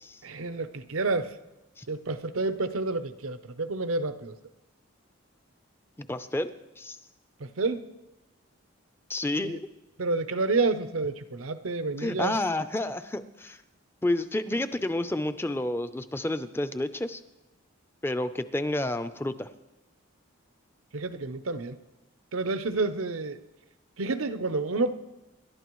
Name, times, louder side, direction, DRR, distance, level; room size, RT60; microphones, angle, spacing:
voice 1, 0.2-1.3 1.9-4.4 7.4-7.9 9.4-9.6 10.0-12.4 20.9-21.8 22.3-23.4 24.0-24.9, right 3 dB, 85° right, 11 dB, 0.8 m, -29 dB
voice 2, 6.0-7.0 9.1-9.6 12.0-13.6 14.0-17.2 18.0-19.5, left 1 dB, 10° left, 11 dB, 0.5 m, -30 dB
27.0 x 12.0 x 3.1 m, 1.0 s
head